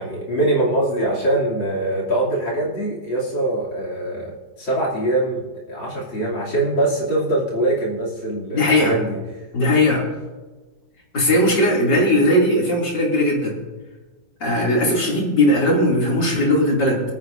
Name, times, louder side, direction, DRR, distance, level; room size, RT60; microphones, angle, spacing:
voice 1, 0.0-4.3 4.6-5.4 5.7-9.2, right 1 dB, 80° left, -5 dB, 3.6 m, -23 dB
voice 2, 8.5-9.0 9.5-10.0 11.1-13.6 14.4-17.0, left 1 dB, 65° left, -2 dB, 3.4 m, -18 dB
24.5 x 9.2 x 2.6 m, 1.2 s
omnidirectional pair, 2.0 m